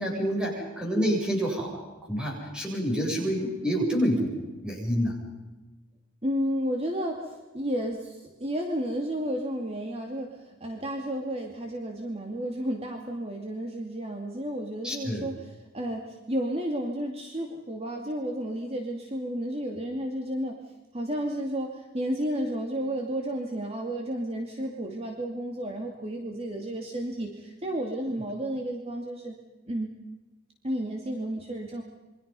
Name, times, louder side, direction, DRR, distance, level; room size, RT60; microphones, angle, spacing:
voice 1, 0.0-1.8 2.1-4.3 4.6-5.2 14.8-15.3, equal, 5° right, -1 dB, 7.6 m, -27 dB
voice 2, 6.2-20.6 20.9-29.3 29.7-29.9 30.6-31.8, right 1 dB, 30° right, 2 dB, 2.6 m, -32 dB
28.0 x 24.5 x 5.6 m, 1.1 s
head